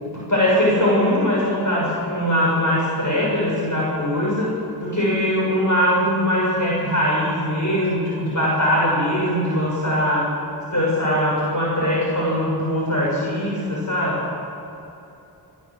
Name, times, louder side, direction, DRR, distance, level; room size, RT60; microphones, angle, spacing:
voice 1, 0.1-4.5 4.8-10.3 10.7-14.2, equal, 50° left, -6 dB, 6.6 m, -21 dB
27.5 x 16.5 x 7.7 m, 2.9 s
wide cardioid pair, 60°, 39 cm